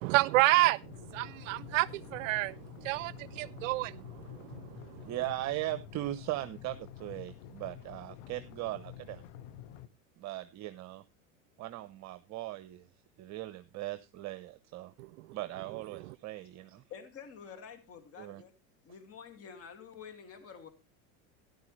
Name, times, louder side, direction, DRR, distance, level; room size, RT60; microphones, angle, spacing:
voice 1, 0.0-5.0 15.0-15.1, right 20 dB, 70° right, 0.5 m, -30 dB
sound 1, 0.8-9.9, left 10 dB, 60° left, 1.3 m, -49 dB
voice 2, 5.1-9.2 10.2-11.0 11.6-12.9 13.2-14.9 15.3-16.8 18.2-18.4, right 16 dB, 40° right, 0.9 m, -39 dB
voice 3, 16.9-18.5 18.8-20.7, left 7 dB, 35° left, 2.4 m, -48 dB
13.0 x 11.0 x 3.2 m
hypercardioid pair, 105°, 41 cm